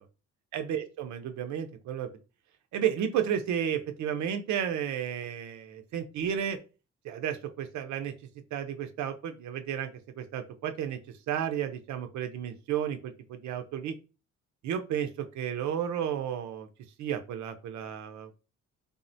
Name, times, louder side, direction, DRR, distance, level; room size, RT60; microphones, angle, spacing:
voice 1, 0.5-2.1 2.7-6.6 7.0-8.1 8.5-9.9 10.2-11.0 11.3-13.9 14.6-15.1 15.3-16.7 17.0-18.3, right 9 dB, 70° right, 7 dB, 0.4 m, -32 dB
3.4 x 2.1 x 2.6 m, 0.32 s
cardioid pair, 90°, 30 cm